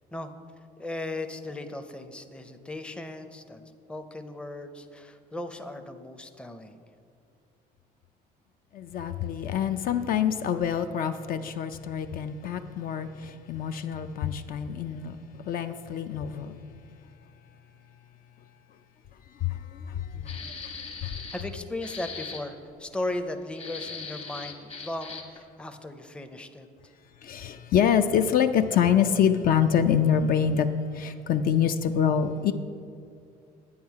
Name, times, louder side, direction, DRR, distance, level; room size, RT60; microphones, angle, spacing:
voice 1, 0.8-6.8 20.1-20.5 21.3-26.9, left 2 dB, 5° left, 7 dB, 0.5 m, -37 dB
voice 2, 8.7-15.2 15.4-16.6 19.4-20.4 21.0-21.1 27.2-30.7 30.9-32.5, left 8 dB, 60° left, 9 dB, 0.4 m, -26 dB
sound 1, 20.3-21.5 21.8-22.4 23.5-25.4, left 5 dB, 35° left, 1.2 m, -39 dB
8.7 x 7.2 x 4.7 m, 2.5 s
cardioid pair, 110°, 17 cm